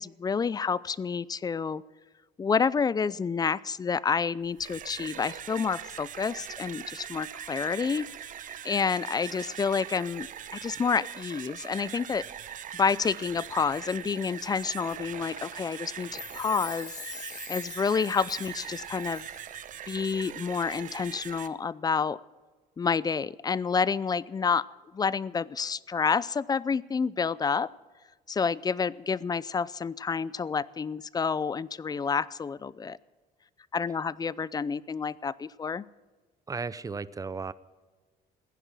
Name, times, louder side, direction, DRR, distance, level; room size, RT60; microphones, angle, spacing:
voice 1, 0.0-1.8 2.4-8.1 8.6-10.3 10.5-12.3 12.7-16.9 17.5-19.3 19.9-22.2 22.8-24.7 24.9-27.7 28.3-33.0 33.7-35.8, left 5 dB, 25° left, 21 dB, 0.4 m, -29 dB
sound 1, 4.4-21.5, right 9 dB, 50° right, 0.9 m, -41 dB
Chime, 15.9-19.6 19.8-19.9, left 6 dB, 50° left, 3.2 m, -44 dB
voice 2, 36.5-37.5, right 4 dB, 20° right, 17 dB, 0.6 m, -35 dB
16.0 x 10.0 x 7.4 m, 1.3 s
cardioid pair, 110°, 17 cm